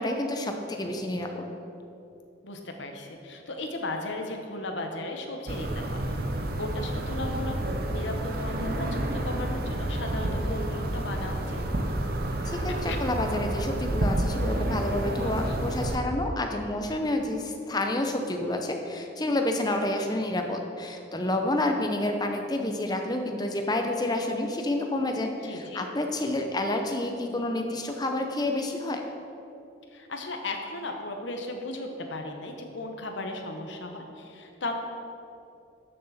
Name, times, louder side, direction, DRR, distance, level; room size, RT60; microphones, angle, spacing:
voice 1, 0.0-1.4 12.4-29.0, left 1 dB, 20° left, 4 dB, 0.7 m, -29 dB
voice 2, 2.4-6.0 6.6-11.6 12.9-13.0 15.2-15.6 25.4-25.9 29.9-34.7, left 2 dB, 70° left, 3 dB, 1.1 m, -36 dB
sound 1, 5.5-16.0, right 1 dB, 50° right, 0.8 m, -29 dB
12.5 x 6.7 x 4.2 m, 2.7 s
head